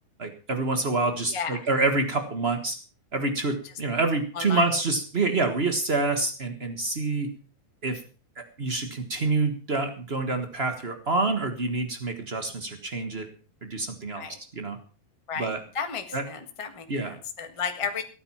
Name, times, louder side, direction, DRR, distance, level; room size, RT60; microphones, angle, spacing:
voice 1, 0.2-2.8 3.1-7.3 7.8-8.0 8.4-13.3 13.6-14.3 14.5-14.8 15.4-15.6 16.1-16.2 16.9-17.1, right 3 dB, 90° right, 7 dB, 0.5 m, -27 dB
voice 2, 1.3-1.6 4.3-4.6 14.1-14.4 15.3-18.0, left 6 dB, 25° left, 6 dB, 0.7 m, -33 dB
16.5 x 9.5 x 5.8 m, 0.38 s
omnidirectional pair, 3.7 m